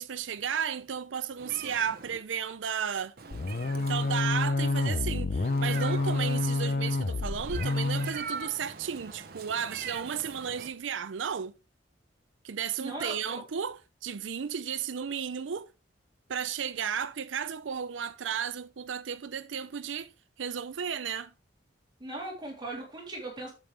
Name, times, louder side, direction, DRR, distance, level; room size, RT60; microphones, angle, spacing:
voice 1, 0.0-3.1 3.7-11.6 12.4-15.7 16.3-20.1 20.4-21.3, right 7 dB, 85° right, 0.5 m, -34 dB
Meow, 1.4-2.2 3.2-4.5 5.4-6.5 7.4-10.7, right 6 dB, 55° right, 1.1 m, -41 dB
sound 1, 3.3-8.2, left 2 dB, 45° left, 0.5 m, -28 dB
voice 2, 12.8-13.4 22.0-23.5, right 2 dB, 25° right, 3.2 m, -38 dB
8.8 x 7.6 x 3.3 m
head